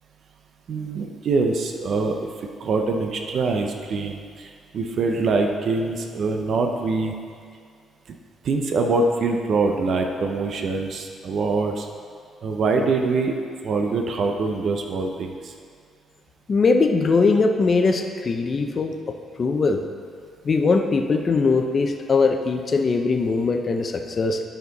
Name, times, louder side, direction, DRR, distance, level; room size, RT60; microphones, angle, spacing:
voice 1, 0.7-2.3 2.6-7.1 8.4-11.9 12.4-13.3 13.6-15.5, right 3 dB, 60° right, 3 dB, 0.7 m, -24 dB
voice 2, 16.5-18.9 19.4-19.8 20.4-24.4, left 4 dB, 40° left, 4 dB, 0.7 m, -20 dB
12.0 x 4.4 x 4.1 m, 2.2 s
cardioid pair, 90°, 0 cm